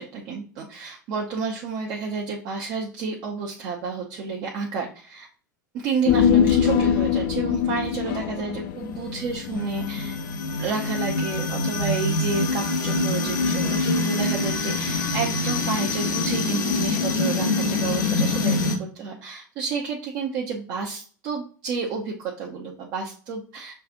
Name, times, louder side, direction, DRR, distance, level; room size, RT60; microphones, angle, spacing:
voice 1, 0.0-5.3 5.7-10.2 10.6-23.7, right 5 dB, 50° right, -1 dB, 0.7 m, -30 dB
Human voice, 6.1-10.7 11.0-11.1, left 8 dB, 50° left, 0.4 m, -22 dB
sound 1, 8.9-18.8, left 3 dB, 75° left, 0.7 m, -25 dB
6.5 x 2.4 x 2.6 m, 0.42 s
figure-of-eight pair, 80°, 10 cm